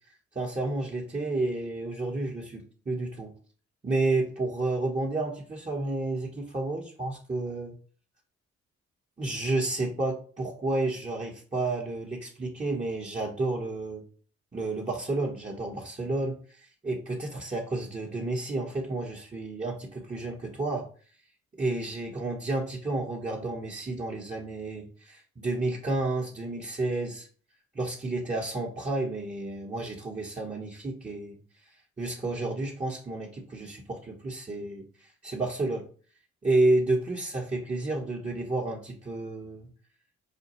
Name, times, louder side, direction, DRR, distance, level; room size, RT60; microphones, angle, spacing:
voice 1, 0.3-3.3 3.8-7.7 9.2-14.0 14.5-20.9 21.6-27.3 27.7-31.4 32.0-35.9 36.4-39.7, right 2 dB, 20° right, -3 dB, 0.9 m, -31 dB
5.0 x 2.3 x 2.9 m, 0.42 s
hypercardioid pair, 45°, 32 cm